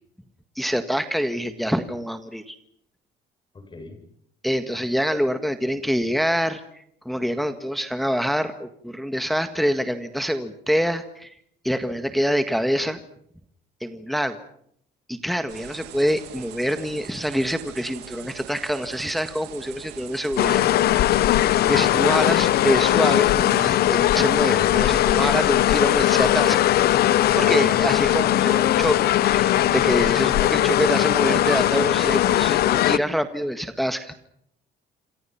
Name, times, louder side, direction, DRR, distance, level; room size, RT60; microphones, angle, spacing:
voice 1, 0.6-2.6 4.4-11.3 11.6-13.0 13.8-14.4 15.1-21.2 21.7-26.8 27.4-34.3, equal, ahead, 8 dB, 1.7 m, -25 dB
voice 2, 3.5-4.0 24.5-24.9 27.2-27.9, left 2 dB, 25° left, 8 dB, 7.0 m, -39 dB
sound 1, 15.5-26.2, right 12 dB, 90° right, 3.0 m, -43 dB
sound 2, 20.4-33.0, left 13 dB, 65° left, 1.0 m, -19 dB
28.0 x 26.0 x 5.9 m, 0.71 s
cardioid pair, 110°, 17 cm